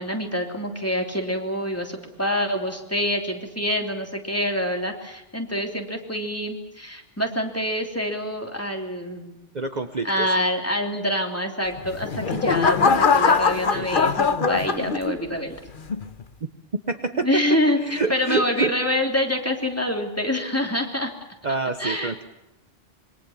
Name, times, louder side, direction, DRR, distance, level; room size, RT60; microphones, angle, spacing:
voice 1, 0.0-9.4 10.0-15.6 17.1-21.1 21.8-22.1, left 1 dB, 10° left, 3 dB, 3.2 m, -26 dB
voice 2, 9.5-10.3 16.9-17.4 17.7-18.7 21.4-22.2, right 3 dB, 40° right, 7 dB, 1.2 m, -26 dB
sound 1, 11.8-15.4 15.9-16.2, left 5 dB, 45° left, 1.2 m, -21 dB
26.5 x 23.0 x 7.3 m, 0.93 s
omnidirectional pair, 1.2 m